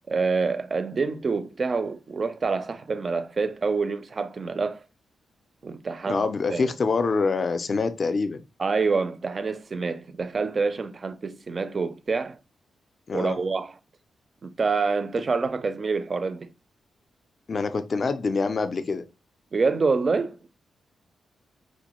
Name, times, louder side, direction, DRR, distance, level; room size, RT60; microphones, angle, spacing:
voice 1, 0.1-4.8 5.6-6.6 8.6-12.4 13.1-13.7 14.4-16.5 19.5-20.4, right 4 dB, 35° right, 0.4 m, -27 dB
voice 2, 6.1-8.4 13.1-13.4 17.5-19.0, left 4 dB, 35° left, 0.4 m, -25 dB
4.8 x 2.2 x 3.0 m
wide cardioid pair, 165°, 0 cm